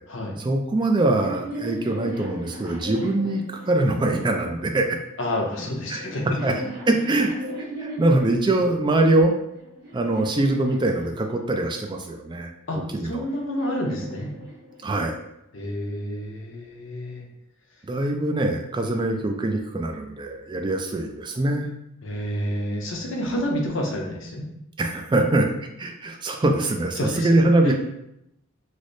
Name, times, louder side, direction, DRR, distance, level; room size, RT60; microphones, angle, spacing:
voice 1, 0.4-5.0 5.9-6.0 6.4-6.5 6.9-7.4 7.8-9.3 9.9-13.3 14.8-15.2 17.8-21.7 24.8-25.5 25.8-27.7, right 2 dB, 20° right, 3 dB, 0.3 m, -23 dB
sound 1, 0.9-4.3 5.2-8.6 9.2-11.7 12.7-15.1, equal, 50° right, 1.2 m, -37 dB
voice 2, 5.2-6.6 12.7-14.3 15.5-17.2 22.0-24.5 27.0-27.7, equal, 65° left, 0 dB, 0.7 m, -29 dB
3.2 x 2.0 x 3.9 m, 0.80 s
head